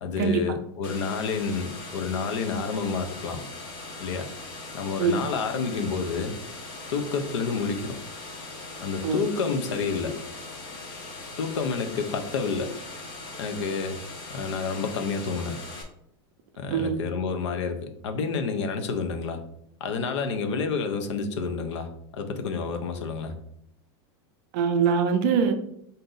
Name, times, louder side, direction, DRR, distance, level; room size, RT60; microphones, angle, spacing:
voice 1, 0.0-3.5 4.0-4.3 4.7-6.4 6.9-8.0 8.8-10.2 11.4-12.7 13.4-14.0 14.3-15.6 16.6-19.4 19.8-23.3, left 5 dB, 85° left, 7 dB, 0.7 m, -29 dB
sound 1, 0.8-15.8, left 2 dB, 35° left, 0.6 m, -40 dB
voice 2, 24.5-25.5, right 6 dB, 40° right, 6 dB, 0.5 m, -23 dB
4.0 x 2.7 x 3.7 m, 0.73 s
supercardioid pair, 180°, 14 cm